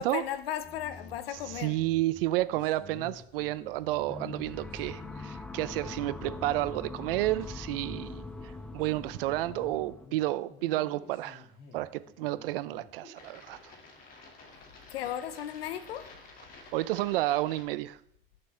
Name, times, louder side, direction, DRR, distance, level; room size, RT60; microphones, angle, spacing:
voice 1, 0.0-1.8 14.9-16.2, left 11 dB, 85° left, 0.8 m, -36 dB
sound 1, 0.6-17.6, left 3 dB, 30° left, 2.3 m, -51 dB
voice 2, 1.3-11.4 11.7-13.7 16.7-18.0, right 16 dB, 70° right, 0.7 m, -31 dB
sound 2, 4.1-10.1, left 3 dB, 5° left, 0.5 m, -42 dB
17.5 x 6.8 x 3.4 m
supercardioid pair, 135°, 29 cm